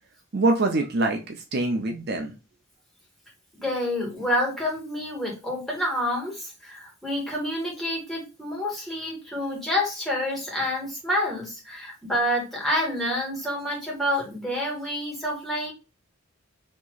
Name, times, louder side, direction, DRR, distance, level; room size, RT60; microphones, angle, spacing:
voice 1, 0.3-2.3, right 2 dB, 55° right, 3 dB, 0.6 m, -24 dB
voice 2, 3.6-15.7, left 1 dB, ahead, -4 dB, 2.0 m, -28 dB
4.3 x 3.0 x 2.5 m, 0.30 s
head